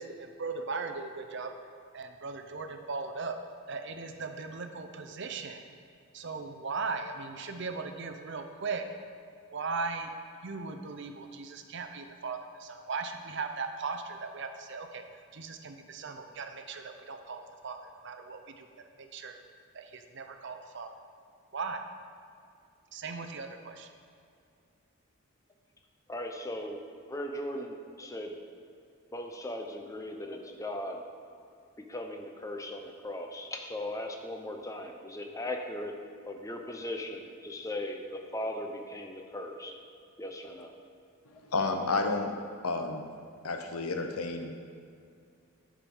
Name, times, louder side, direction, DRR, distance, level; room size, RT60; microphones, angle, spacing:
voice 1, 0.0-1.5 1.9-3.4 3.7-5.6 6.1-8.8 9.5-10.1 10.4-15.0 15.3-18.7 19.0-19.4 19.7-20.9 21.5-21.8 22.9-23.9, right 4 dB, 55° right, 6 dB, 0.6 m, -38 dB
voice 2, 26.1-26.8 27.1-28.3 29.1-31.0 31.9-36.0 36.3-39.8 40.2-40.7, left 1 dB, 15° left, 3 dB, 0.7 m, -38 dB
voice 3, 41.5-42.4 42.6-43.1 43.4-44.6, left 3 dB, 90° left, 5 dB, 0.9 m, -31 dB
10.0 x 5.0 x 5.5 m, 2.4 s
head